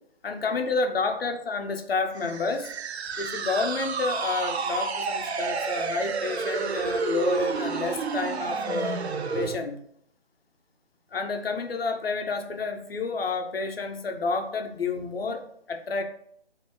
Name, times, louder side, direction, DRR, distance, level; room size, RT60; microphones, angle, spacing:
voice 1, 0.2-2.7 3.2-9.1 9.3-9.8 11.1-16.0, left 3 dB, 65° left, 5 dB, 0.7 m, -29 dB
sound 1, 2.1-9.6, right 5 dB, 85° right, 0.5 m, -30 dB
3.0 x 2.7 x 4.4 m, 0.68 s
figure-of-eight pair, 160°, 31 cm